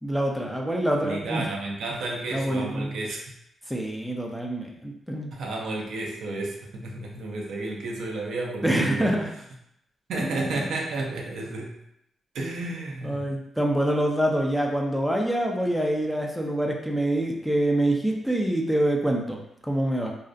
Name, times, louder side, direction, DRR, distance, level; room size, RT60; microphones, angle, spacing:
voice 1, 0.0-1.5 2.3-3.0 3.7-5.3 8.6-9.3 10.2-10.6 13.0-20.1, right 1 dB, ahead, 0 dB, 0.4 m, -26 dB
voice 2, 1.0-3.2 5.3-9.2 10.1-11.8 12.3-13.3, right 2 dB, 80° right, -1 dB, 0.5 m, -32 dB
2.5 x 2.0 x 2.4 m, 0.77 s
cardioid pair, 70°, 0 cm